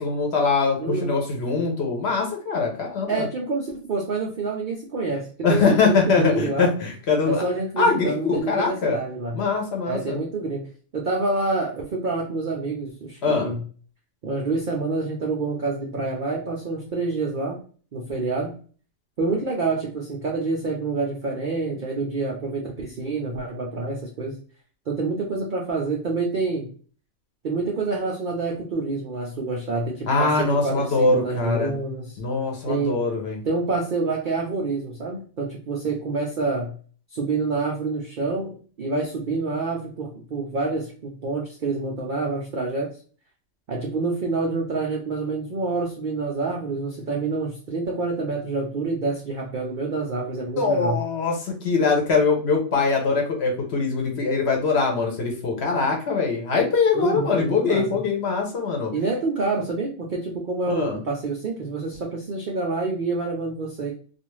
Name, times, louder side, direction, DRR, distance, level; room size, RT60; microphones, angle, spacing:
voice 1, 0.0-3.2 5.4-7.4 7.8-9.0 9.3-10.2 13.2-13.5 30.1-31.7 32.2-33.4 50.6-58.9 60.8-61.0, left 4 dB, 55° left, 0 dB, 0.9 m, -22 dB
voice 2, 0.8-1.2 3.1-6.7 7.2-9.4 9.8-13.6 14.2-17.6 17.9-18.5 19.2-24.4 24.9-26.7 27.4-32.2 32.7-33.0 33.4-36.8 37.1-42.9 43.7-51.0 56.9-58.0 58.9-63.9, right 3 dB, 80° right, -1 dB, 0.4 m, -27 dB
2.4 x 2.4 x 3.0 m, 0.42 s
omnidirectional pair, 1.5 m